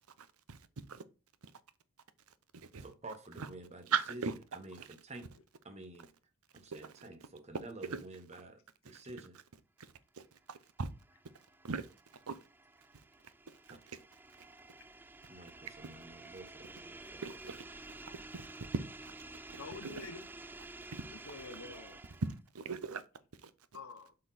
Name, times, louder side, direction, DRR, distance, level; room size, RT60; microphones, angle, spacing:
voice 1, 0.2-0.6 0.9-1.0 2.5-2.9 3.4-3.5 3.9-4.3 4.7-4.9 6.7-6.8 7.9-8.0 8.9-9.0 9.8-10.9 11.6-11.9 12.3-12.4 13.7-14.0 17.2-17.6 18.3-18.5 19.8-20.1 20.9-21.0 22.5-23.0 23.4-23.5, right 6 dB, 80° right, 0.8 m, -39 dB
voice 2, 2.8-4.2 4.5-5.3 5.6-6.1 6.5-9.4 13.7-13.8 15.3-17.2, right 2 dB, 30° right, 1.2 m, -49 dB
sound 1, 10.6-22.5, right 2 dB, 10° right, 0.3 m, -51 dB
voice 3, 19.5-20.3 21.1-22.0 23.7-24.1, left 4 dB, 70° left, 0.9 m, -47 dB
7.9 x 4.4 x 4.1 m
head